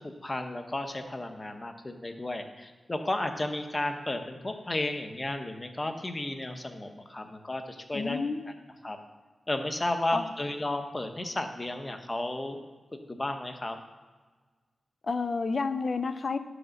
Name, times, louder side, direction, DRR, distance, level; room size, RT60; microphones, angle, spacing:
voice 1, 0.0-8.2 8.8-9.0 9.5-12.6 13.1-13.8, left 1 dB, 20° left, 6 dB, 0.8 m, -33 dB
voice 2, 7.9-8.5 10.1-10.2 15.0-16.4, left 4 dB, 45° left, 11 dB, 0.5 m, -30 dB
12.0 x 4.9 x 6.4 m, 1.4 s
wide cardioid pair, 170°, 0 cm